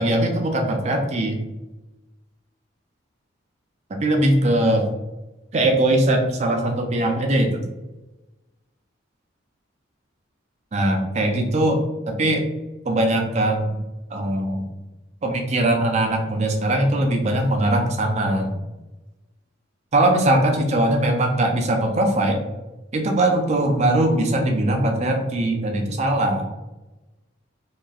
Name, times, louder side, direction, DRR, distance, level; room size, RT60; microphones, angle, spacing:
voice 1, 0.0-1.4 3.9-4.9 5.5-7.5 10.7-11.8 12.2-12.4 12.8-13.8 14.1-14.7 15.2-18.5 19.9-22.4 22.9-26.5, right 1 dB, 35° right, 3 dB, 0.4 m, -20 dB
2.9 x 2.3 x 2.4 m, 1.1 s
head